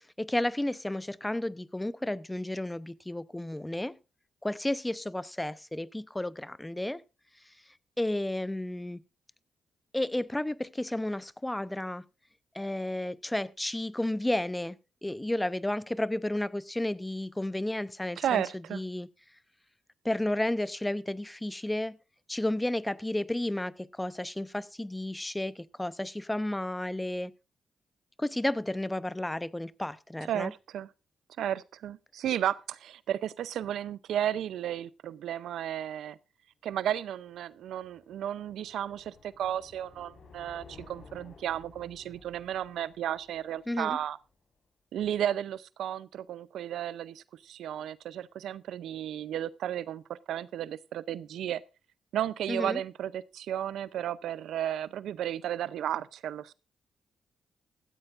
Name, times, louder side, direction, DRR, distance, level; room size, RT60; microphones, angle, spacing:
voice 1, 0.2-4.0 4.4-7.0 8.0-9.0 9.9-12.0 12.5-14.8 15.0-18.4 18.7-19.1 20.0-22.0 22.3-27.3 28.2-30.5 43.7-44.0 52.5-52.8, left 1 dB, 15° left, 0.7 m, -32 dB
voice 2, 18.2-18.8 30.3-30.9 31.4-36.2 36.6-44.2 44.9-51.6 52.1-56.5, right 10 dB, 80° right, 0.5 m, -33 dB
sound 1, 37.0-44.3, left 4 dB, 60° left, 4.6 m, -55 dB
16.5 x 14.0 x 2.5 m
supercardioid pair, 50°, 0 cm